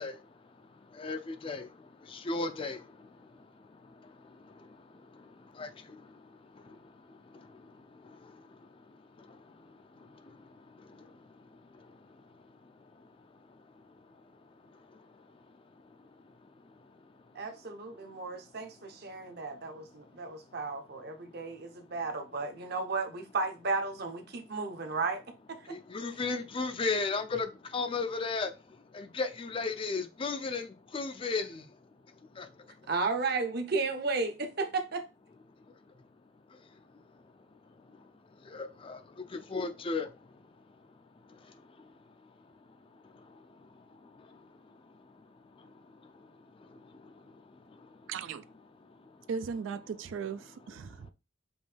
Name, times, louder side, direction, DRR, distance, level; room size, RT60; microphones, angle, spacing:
voice 1, 0.0-17.4 18.0-18.5 19.1-20.5 21.2-21.8 25.6-32.9 35.6-35.9 36.5-48.1 48.8-49.3 50.9-51.1, left 4 dB, 25° left, 0.4 m, -40 dB
voice 2, 17.3-25.2 32.9-35.0, right 3 dB, 55° right, 0.8 m, -34 dB
voice 3, 48.1-48.4 49.3-51.1, right 6 dB, 80° right, 0.3 m, -37 dB
5.3 x 2.6 x 3.3 m
head